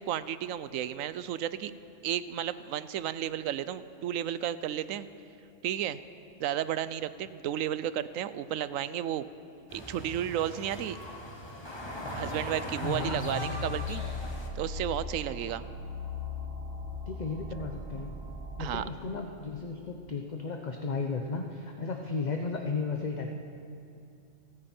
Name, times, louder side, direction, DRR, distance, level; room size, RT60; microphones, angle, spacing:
voice 1, 0.0-1.7 2.0-5.1 5.6-6.0 6.4-9.3 9.7-11.0 12.1-14.0 14.6-15.6 18.6-18.8, right 11 dB, 85° right, 15 dB, 1.0 m, -33 dB
sound 1, 9.7-14.5, equal, 20° left, 1.5 m, -39 dB
voice 2, 12.8-13.5 17.1-18.1 18.6-23.3, left 4 dB, 40° left, 3 dB, 0.8 m, -34 dB
sound 2, 13.0-18.8, left 3 dB, 55° right, 1.7 m, -39 dB
29.0 x 9.9 x 4.4 m, 2.5 s
omnidirectional pair, 1.3 m